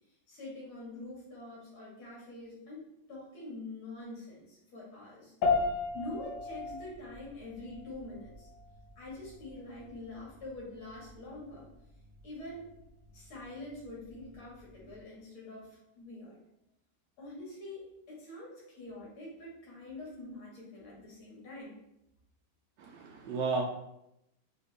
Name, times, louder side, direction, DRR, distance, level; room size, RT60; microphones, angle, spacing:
voice 1, 0.3-5.3 5.9-8.5 9.0-11.7 12.2-12.7 13.1-16.4 17.2-21.8, left 2 dB, 80° left, -5 dB, 2.7 m, -45 dB
sound 1, 5.4-15.0, left 4 dB, 60° left, 1.3 m, -37 dB
voice 2, 22.8-23.6, right 4 dB, 75° right, 1 dB, 1.0 m, -33 dB
5.6 x 2.8 x 3.4 m, 0.83 s
omnidirectional pair, 2.3 m